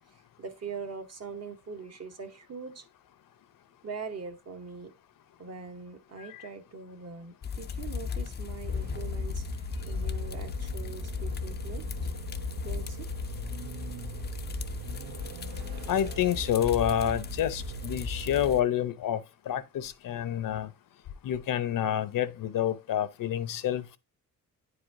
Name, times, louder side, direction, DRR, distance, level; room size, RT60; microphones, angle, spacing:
voice 1, 0.4-2.8 3.8-4.9 5.4-12.1 12.6-13.1 15.5-15.6, right 5 dB, 45° right, 1.0 m, -42 dB
sound 1, 7.4-18.6, left 6 dB, 30° left, 0.4 m, -36 dB
sound 2, 8.7-18.5, right 9 dB, 80° right, 0.6 m, -42 dB
voice 2, 15.9-19.2 19.5-20.7 21.2-24.0, left 10 dB, 65° left, 0.7 m, -28 dB
9.6 x 4.9 x 2.6 m
cardioid pair, 130°, 36 cm